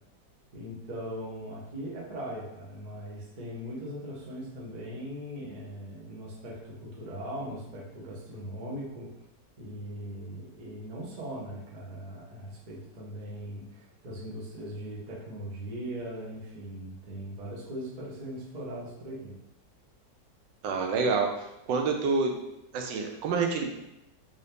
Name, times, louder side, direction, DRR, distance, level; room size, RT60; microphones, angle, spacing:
voice 1, 0.5-9.1 9.6-19.4, equal, 45° right, -4 dB, 0.5 m, -40 dB
voice 2, 20.6-21.3 21.7-22.4 22.7-23.7, right 4 dB, 75° right, 3 dB, 1.2 m, -27 dB
3.8 x 2.7 x 3.3 m, 0.89 s
omnidirectional pair, 2.0 m